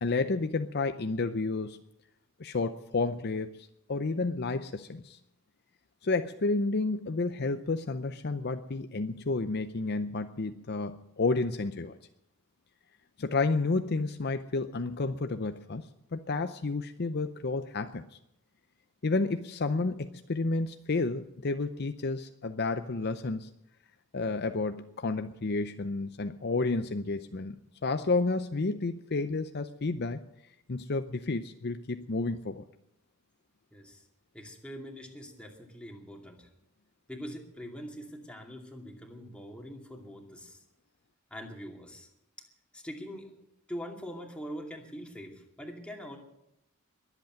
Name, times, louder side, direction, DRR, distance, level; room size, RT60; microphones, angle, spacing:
voice 1, 0.0-1.8 2.4-5.2 6.0-12.0 13.2-15.9 16.1-18.2 19.0-23.5 24.1-27.6 27.8-30.2 30.7-32.6, left 3 dB, 45° left, 9 dB, 0.6 m, -31 dB
voice 2, 33.7-34.0 34.3-36.5 37.1-40.6 41.3-42.1 42.7-43.3 43.7-46.2, equal, 5° left, 1 dB, 2.5 m, -43 dB
22.0 x 8.3 x 7.8 m, 0.82 s
head